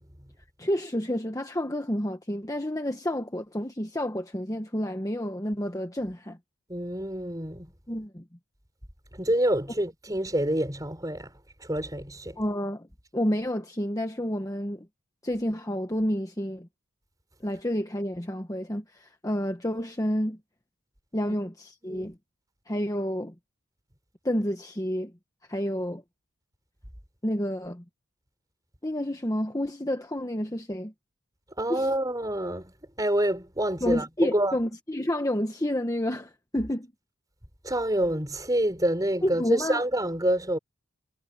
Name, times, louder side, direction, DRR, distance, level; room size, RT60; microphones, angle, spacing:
voice 1, 0.6-6.4 7.9-8.2 12.4-12.9 13.1-14.9 15.2-16.7 17.4-20.4 21.1-22.1 22.7-23.3 24.2-25.1 25.5-26.0 27.2-27.8 28.8-30.9 31.7-31.9 33.8-36.9 39.2-39.8, equal, 15° left, 1.3 m, -29 dB
voice 2, 6.7-7.7 9.1-11.3 11.6-12.4 21.8-22.1 31.6-32.7 33.0-34.6 37.6-40.6, right 1 dB, 15° right, 6.6 m, -27 dB
head